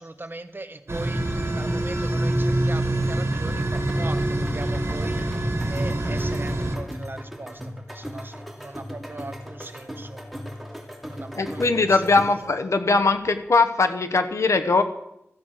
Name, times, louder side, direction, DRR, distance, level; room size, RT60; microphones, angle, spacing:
voice 1, 0.0-10.2 11.1-12.2, right 2 dB, 45° right, 10 dB, 1.3 m, -39 dB
sound 1, 0.9-6.8, right 1 dB, 65° right, 2.3 m, -25 dB
sound 2, 3.0-12.5, equal, ahead, 3.0 m, -38 dB
voice 2, 11.4-14.8, left 3 dB, 90° left, 8 dB, 1.1 m, -20 dB
14.5 x 8.4 x 6.6 m, 0.82 s
wide cardioid pair, 45°, 5 cm